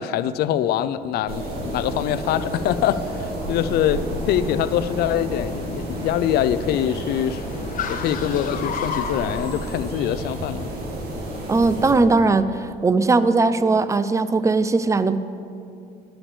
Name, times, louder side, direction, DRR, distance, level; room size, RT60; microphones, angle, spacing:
voice 1, 0.0-7.4 7.9-10.7, left 10 dB, 70° left, 14 dB, 0.5 m, -24 dB
Car, 0.8-9.6, left 6 dB, 50° left, 0.9 m, -36 dB
sound 1, 1.3-12.0, right 1 dB, 65° right, 2.4 m, -31 dB
voice 2, 11.5-15.2, right 3 dB, 20° right, 13 dB, 0.5 m, -19 dB
10.0 x 7.1 x 7.0 m, 2.4 s
cardioid pair, 110°, 17 cm